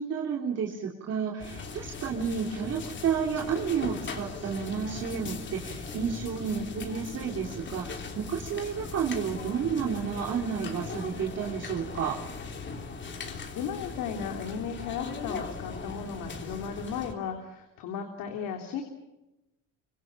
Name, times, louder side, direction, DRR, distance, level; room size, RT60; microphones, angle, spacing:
voice 1, 0.0-12.2, right 7 dB, 50° right, -1 dB, 3.2 m, -31 dB
sound 1, 1.4-17.1, left 4 dB, 35° left, 3.4 m, -39 dB
voice 2, 13.1-18.8, left 7 dB, 80° left, 4 dB, 3.4 m, -36 dB
25.5 x 25.0 x 7.4 m, 0.95 s
cardioid pair, 135°, 33 cm